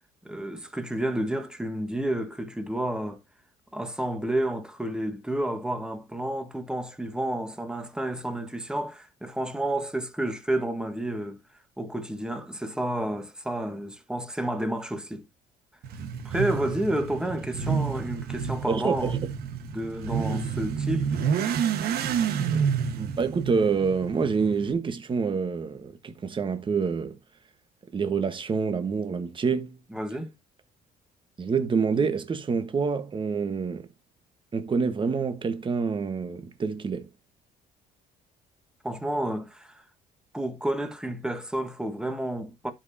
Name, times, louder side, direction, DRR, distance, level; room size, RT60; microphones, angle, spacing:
voice 1, 0.2-3.2 3.7-11.4 11.8-15.3 16.2-19.1 19.7-21.1 29.9-30.3 38.8-39.8 40.3-42.7, right 1 dB, 5° right, 1.5 m, -30 dB
Motorcycle / Accelerating revving vroom, 15.8-24.7, right 7 dB, 70° right, 1.4 m, -29 dB
voice 2, 18.7-19.2 23.0-27.2 27.9-29.8 31.4-33.9 34.5-37.1, right 5 dB, 30° right, 1.3 m, -27 dB
12.0 x 5.4 x 2.8 m
cardioid pair, 110°, 17 cm